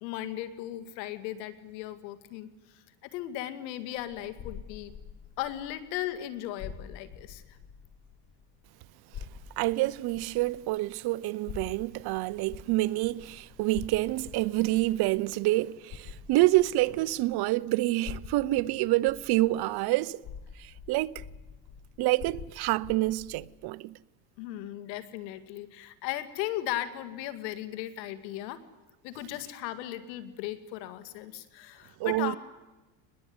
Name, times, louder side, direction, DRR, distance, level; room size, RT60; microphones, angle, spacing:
voice 1, 0.0-2.5 3.1-4.9 5.4-7.4 24.4-28.6 29.0-32.4, left 13 dB, 85° left, 2.4 m, -37 dB
sound 1, 4.0-8.7 9.1-17.6 18.0-23.5, left 7 dB, 35° left, 1.3 m, -46 dB
voice 2, 9.6-20.2 20.6-21.2 22.0-24.0 32.0-32.4, right 18 dB, 50° right, 0.7 m, -27 dB
23.5 x 20.5 x 9.6 m
supercardioid pair, 125°, 50 cm